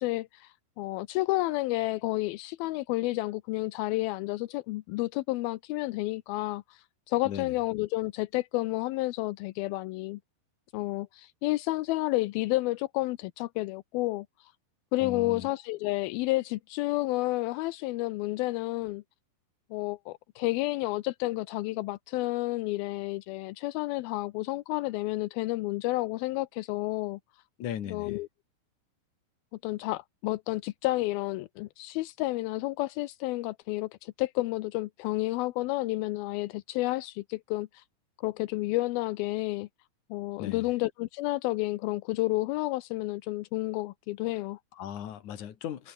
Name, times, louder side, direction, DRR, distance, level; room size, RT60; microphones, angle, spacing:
voice 1, 0.0-10.2 10.7-14.5 14.9-19.0 19.7-27.2 27.9-28.3 29.6-37.8 38.2-39.7 40.1-44.6, left 19 dB, 80° left, 2.3 m, -31 dB
voice 2, 7.2-7.6 15.0-15.5 27.6-28.2 40.4-40.7 44.7-45.9, left 10 dB, 55° left, 3.0 m, -38 dB
omnidirectional pair, 4.7 m